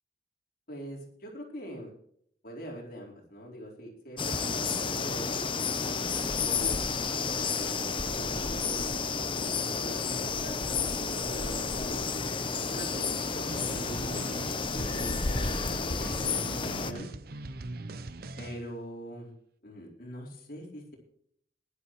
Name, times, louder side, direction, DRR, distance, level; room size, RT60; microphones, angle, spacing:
voice 1, 0.7-1.9 2.4-5.3 5.8-12.1 12.7-17.1 18.4-19.3 19.6-21.0, equal, 55° left, -2 dB, 4.4 m, -44 dB
sound 1, 4.2-16.9, left 4 dB, 30° left, 0.9 m, -31 dB
sound 2, 13.5-18.6, right 2 dB, 55° right, 0.7 m, -41 dB
20.0 x 11.5 x 3.2 m, 0.68 s
head